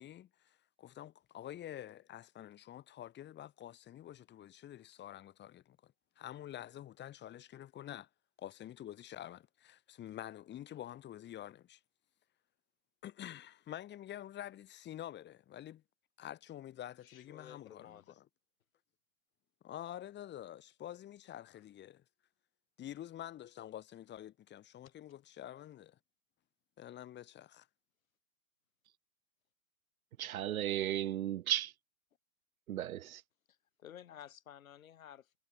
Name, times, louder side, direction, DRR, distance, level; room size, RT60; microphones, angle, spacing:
voice 1, 0.0-8.1 8.4-11.8 13.0-15.8 16.2-18.2 19.6-22.0 22.8-26.0 26.8-27.7, left 12 dB, 25° left, 5.6 m, -48 dB
voice 2, 17.0-18.2 24.8-24.9 33.5-35.4, left 10 dB, 65° left, 4.9 m, -54 dB
voice 3, 30.2-31.7 32.7-33.2, right 12 dB, 75° right, 0.6 m, -35 dB
hypercardioid pair, 120°, 43 cm